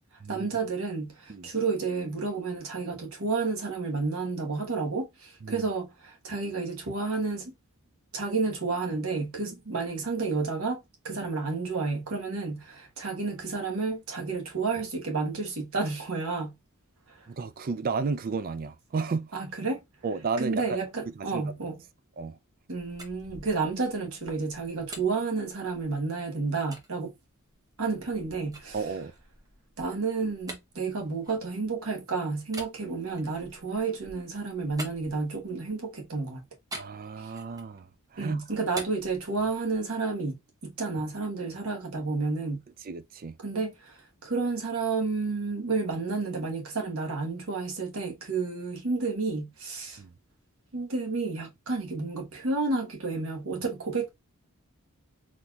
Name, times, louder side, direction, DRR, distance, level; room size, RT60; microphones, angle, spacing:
voice 1, 0.3-7.5 8.1-16.6 19.3-19.8 20.4-21.8 22.7-27.1 27.8-28.8 29.8-36.4 38.2-42.6 43.4-50.0 50.7-54.1, right 4 dB, 70° right, 1.2 m, -31 dB
voice 2, 17.3-19.3 20.0-20.8 21.3-21.5 22.2-22.4 28.7-29.1 36.7-37.9 38.1-38.4 42.9-43.4 50.0-50.1, right 4 dB, 40° right, 0.4 m, -32 dB
sound 1, 22.7-26.1 26.7-26.9 27.5-31.9 32.5-35.7 36.7-37.8 38.1-39.9, right 2 dB, 15° right, 0.8 m, -46 dB
4.1 x 3.1 x 2.3 m
head